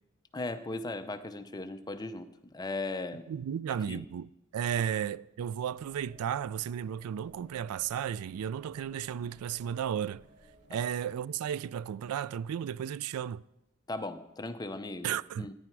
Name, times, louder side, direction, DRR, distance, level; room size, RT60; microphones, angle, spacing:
voice 1, 0.3-3.3 3.9-4.0 10.7-10.8 13.9-15.5, left 2 dB, 20° left, 0.6 m, -38 dB
voice 2, 3.3-10.3 10.7-13.4 15.0-15.5, right 9 dB, 90° right, 0.3 m, -34 dB
sound 1, 5.7-11.1, right 1 dB, 35° right, 4.9 m, -60 dB
15.5 x 9.9 x 4.7 m
head